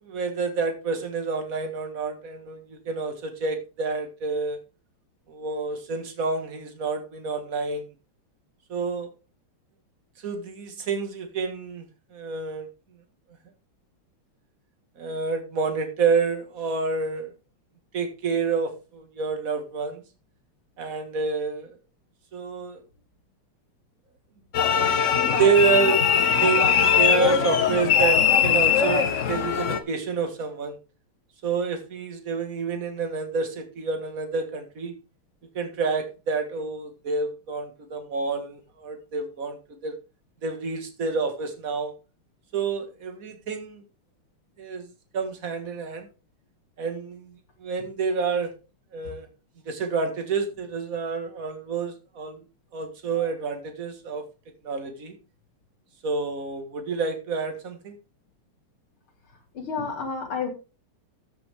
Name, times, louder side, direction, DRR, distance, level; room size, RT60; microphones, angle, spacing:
voice 1, 0.0-4.6 5.3-7.9 8.7-9.1 10.2-11.9 12.1-12.7 15.0-17.3 17.9-20.0 20.8-21.8 22.3-22.8 25.3-26.1 26.4-30.8 31.4-35.0 35.5-40.0 40.4-41.9 42.5-43.8 44.6-46.1 46.8-48.5 48.9-49.3 49.7-52.4 52.7-54.2 54.6-55.2 56.0-58.0, right 5 dB, 40° right, 6 dB, 2.0 m, -28 dB
sound 1, 24.5-29.8, left 7 dB, 50° left, 0.9 m, -21 dB
voice 2, 59.6-60.5, left 5 dB, 75° left, 2 dB, 3.5 m, -30 dB
14.0 x 6.9 x 3.5 m, 0.31 s
omnidirectional pair, 2.4 m